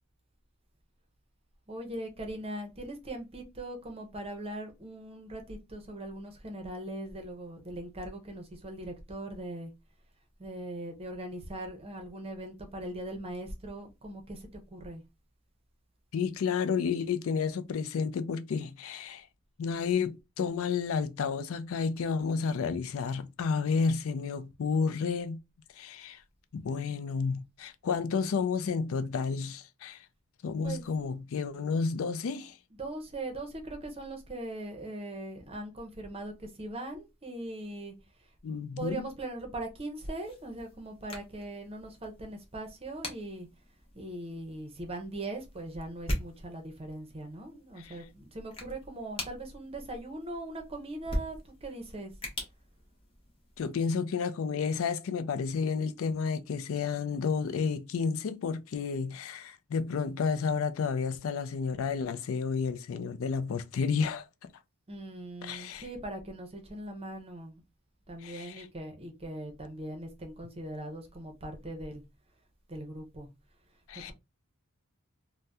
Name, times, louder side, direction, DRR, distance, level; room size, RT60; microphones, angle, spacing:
voice 1, 1.7-9.7 10.4-15.0 30.6-30.8 32.8-37.9 38.5-43.5 43.9-52.1 64.9-67.6 68.1-72.0 72.7-73.3, right 1 dB, 25° right, 0.7 m, -40 dB
voice 2, 16.1-19.3 19.6-25.4 25.8-26.2 26.5-30.1 30.4-32.6 38.4-39.0 47.8-48.0 53.6-64.5 65.4-65.8 68.2-68.7 73.9-74.1, left 5 dB, 65° left, 0.4 m, -31 dB
sound 1, 40.0-53.7, left 1 dB, 25° left, 0.9 m, -42 dB
2.7 x 2.1 x 3.4 m
head